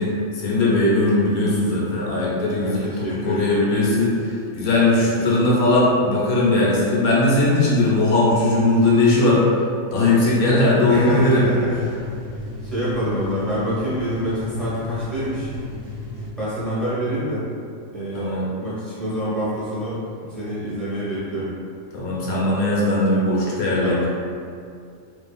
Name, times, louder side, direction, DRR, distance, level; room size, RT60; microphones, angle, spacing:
voice 1, 0.0-4.1 4.5-9.4 9.9-11.4 18.1-18.5 21.9-24.1, left 2 dB, 80° left, -5 dB, 1.1 m, -19 dB
voice 2, 2.6-3.6 5.0-5.6 10.9-12.0 12.6-15.5 16.4-17.5 17.9-21.5 23.8-24.1, equal, ahead, -12 dB, 0.7 m, -27 dB
sound 1, 11.3-16.3, left 2 dB, 75° right, 1.1 m, -34 dB
2.7 x 2.5 x 2.3 m, 2.3 s
omnidirectional pair, 1.5 m